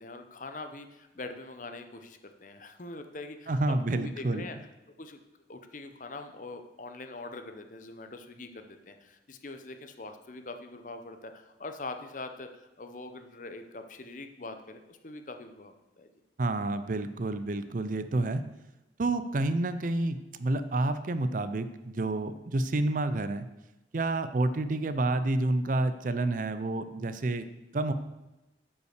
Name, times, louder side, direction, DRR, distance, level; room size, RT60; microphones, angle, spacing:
voice 1, 0.0-4.6 5.0-5.2 5.5-16.1, left 2 dB, 45° left, 7 dB, 0.8 m, -43 dB
voice 2, 3.5-4.5 16.4-18.4 19.0-23.5 23.9-27.4 27.7-27.9, right 2 dB, 45° right, 11 dB, 0.5 m, -29 dB
8.7 x 5.6 x 6.5 m, 0.98 s
head